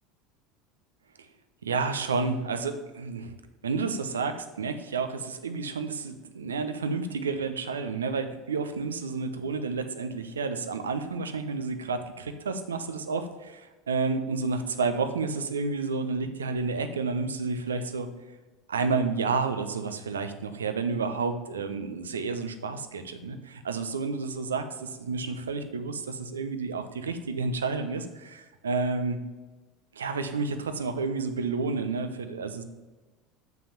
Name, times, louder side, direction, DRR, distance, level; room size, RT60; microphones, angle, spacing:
voice 1, 1.6-3.3 3.6-18.1 18.7-29.2 30.0-32.6, right 4 dB, 80° right, 9 dB, 0.8 m, -30 dB
7.1 x 6.0 x 6.9 m, 1.2 s
figure-of-eight pair, 70°, 0 cm